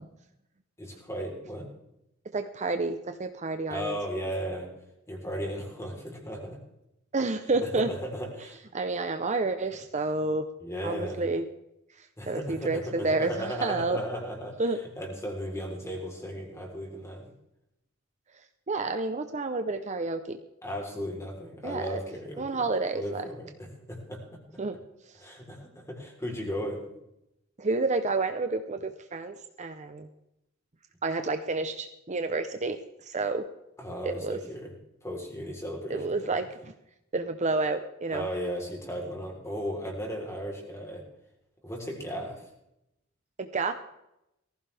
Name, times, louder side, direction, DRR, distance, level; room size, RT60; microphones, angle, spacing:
voice 1, 0.8-1.7 3.7-4.7 5.1-6.6 7.6-8.6 10.6-11.2 12.2-14.6 15.0-17.3 20.6-22.4 22.9-24.4 25.2-26.8 33.8-34.7 35.0-36.4 38.1-41.0 41.6-42.4, equal, 15° left, 0 dB, 3.9 m, -36 dB
voice 2, 2.3-4.0 7.1-7.9 8.7-10.5 10.8-11.4 12.3-14.0 14.6-14.8 18.7-20.4 21.6-22.0 22.4-23.2 24.6-24.8 27.6-30.1 31.0-32.8 33.0-33.5 34.0-34.4 35.9-36.7 37.1-38.3 43.4-43.7, right 3 dB, 35° right, 8 dB, 0.8 m, -29 dB
19.0 x 15.0 x 3.5 m, 0.85 s
head